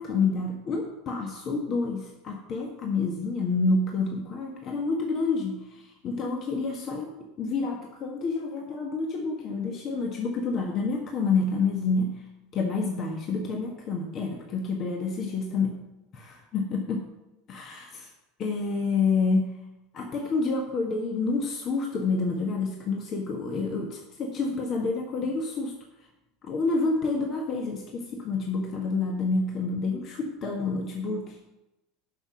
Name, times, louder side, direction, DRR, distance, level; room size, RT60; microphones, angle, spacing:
voice 1, 0.0-7.1 7.4-12.2 12.5-15.8 16.1-17.0 17.5-18.1 18.4-19.5 19.9-25.7 26.4-31.4, left 4 dB, 45° left, 1 dB, 1.4 m, -28 dB
7.9 x 6.0 x 6.2 m, 0.96 s
hypercardioid pair, 85°, 0 cm